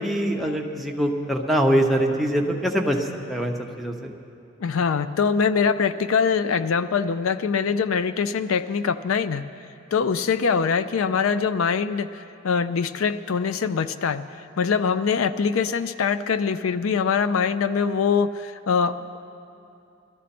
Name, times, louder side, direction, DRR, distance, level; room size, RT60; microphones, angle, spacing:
voice 1, 0.0-4.1, equal, ahead, 2 dB, 0.9 m, -23 dB
voice 2, 4.6-9.4 9.9-19.2, left 6 dB, 75° left, 12 dB, 0.4 m, -23 dB
22.0 x 13.5 x 4.2 m, 2.7 s
head